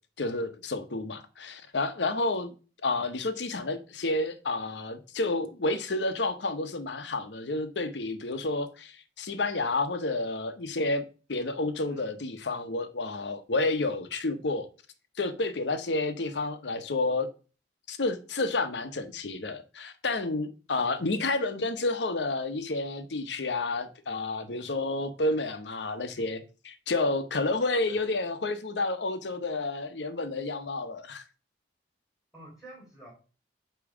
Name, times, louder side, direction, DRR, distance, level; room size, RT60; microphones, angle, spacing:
voice 1, 0.2-2.5 2.8-11.0 11.3-14.7 15.2-17.3 17.9-31.2, left 2 dB, 80° left, 0.9 m, -30 dB
voice 2, 32.3-33.1, right 1 dB, 5° right, 3.9 m, -49 dB
8.5 x 3.1 x 5.9 m
head